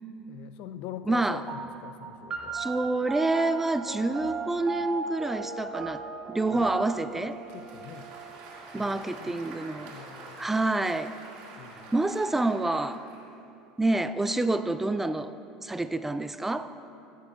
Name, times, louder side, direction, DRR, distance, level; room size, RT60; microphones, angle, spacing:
voice 1, 0.3-2.7 6.5-6.8 7.1-8.1 8.7-9.4 9.9-10.5 11.6-11.9, left 10 dB, 60° left, 11 dB, 0.4 m, -44 dB
voice 2, 1.1-1.4 2.5-6.0 6.3-7.4 8.7-9.9 10.4-11.2 11.9-13.0 13.8-15.4 15.6-16.7, right 2 dB, 10° right, 11 dB, 0.3 m, -27 dB
sound 1, 1.5-10.3, right 5 dB, 30° right, 1.4 m, -38 dB
Applause, 7.3-13.3, right 3 dB, 60° right, 1.9 m, -47 dB
15.0 x 10.0 x 2.4 m, 3.0 s
hypercardioid pair, 75°, 2 cm